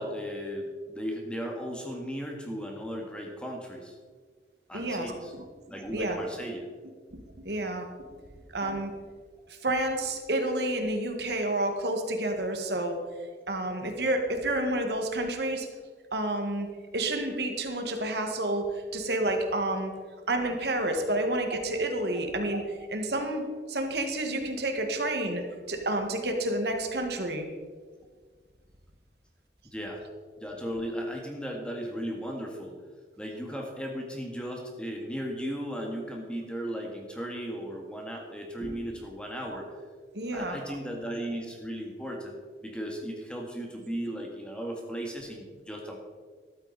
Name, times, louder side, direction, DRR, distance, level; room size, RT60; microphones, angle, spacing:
voice 1, 0.0-4.0 4.7-5.3 5.7-6.7 29.6-30.1 30.4-32.8 33.2-39.7 40.3-46.0, equal, 5° left, 1 dB, 1.9 m, -36 dB
voice 2, 4.7-5.4 5.9-6.2 7.1-7.9 8.5-8.9 9.5-13.0 13.5-15.7 16.1-16.7 16.9-19.9 20.3-23.4 23.7-27.5 38.6-38.7 40.1-40.6, right 1 dB, 75° right, 4 dB, 1.9 m, -30 dB
14.0 x 12.5 x 4.2 m, 1.6 s
head